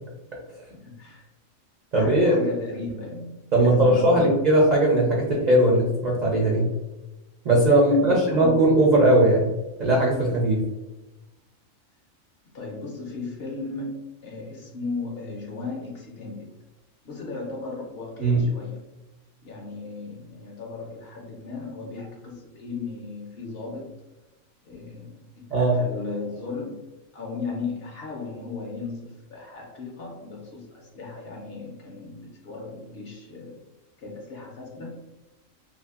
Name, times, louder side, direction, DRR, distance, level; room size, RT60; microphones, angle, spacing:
voice 1, 0.7-1.3 2.0-4.4 7.9-8.7 12.5-16.5 17.0-18.8 19.4-23.9 24.7-26.8 27.1-33.6 34.0-35.0, left 3 dB, 65° left, -1 dB, 0.6 m, -36 dB
voice 2, 1.9-2.4 3.5-6.7 7.4-9.5 9.8-10.6 18.2-18.4 25.5-25.8, right 1 dB, 65° right, -3 dB, 0.4 m, -19 dB
2.7 x 2.4 x 2.3 m, 1.1 s
omnidirectional pair, 1.4 m